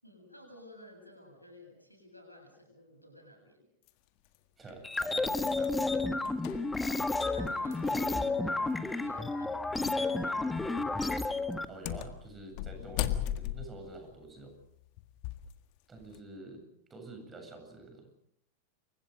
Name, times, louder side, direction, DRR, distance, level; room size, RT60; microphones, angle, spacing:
voice 1, 0.0-3.7 7.3-8.0 9.0-10.4, left 1 dB, 90° left, 3 dB, 7.7 m, -53 dB
sound 1, 3.9-4.0 4.7-8.2 8.5-8.6 9.8-10.1 10.5-10.8 11.5-15.5 16.0-16.2, left 12 dB, 45° left, 1.7 m, -38 dB
voice 2, 4.6-6.0 7.8-8.7 11.7-14.5 15.9-18.1, right 2 dB, 15° right, 5 dB, 7.9 m, -48 dB
sound 2, 4.8-11.6, left 3 dB, 10° left, 1.6 m, -31 dB
29.0 x 24.0 x 5.3 m, 0.69 s
figure-of-eight pair, 90°, 0 cm